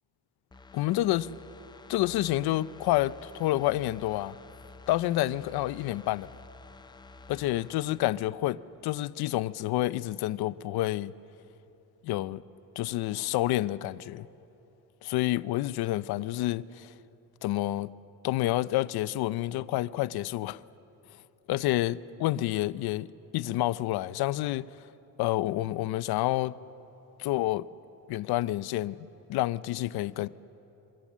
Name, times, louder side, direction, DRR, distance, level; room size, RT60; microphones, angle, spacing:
sound 1, 0.5-9.2 9.5-9.6, left 3 dB, 10° left, 0.5 m, -51 dB
voice 1, 0.7-1.3 1.9-4.4 4.9-6.3 7.3-11.1 12.0-12.4 12.8-14.3 15.0-16.9 17.4-17.9 18.2-20.6 21.5-24.9 25.2-26.5 27.2-27.7 28.1-29.0 29.3-30.3, left 16 dB, 80° left, 0.7 m, -29 dB
28.0 x 23.5 x 7.4 m
cardioid pair, 140°, 38 cm